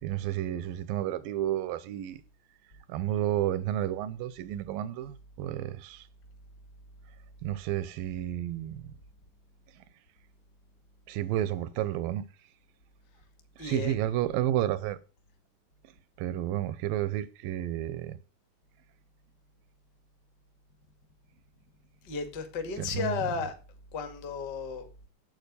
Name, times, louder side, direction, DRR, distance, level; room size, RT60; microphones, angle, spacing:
voice 1, 0.0-2.2 2.9-6.1 7.4-8.8 9.8-9.9 11.1-12.3 13.6-15.0 16.2-18.2 22.8-23.2, right 12 dB, 80° right, 2.2 m, -31 dB
voice 2, 13.6-14.0 22.0-23.5 23.9-25.1, left 5 dB, 40° left, 1.7 m, -34 dB
9.1 x 8.4 x 6.8 m
omnidirectional pair, 4.5 m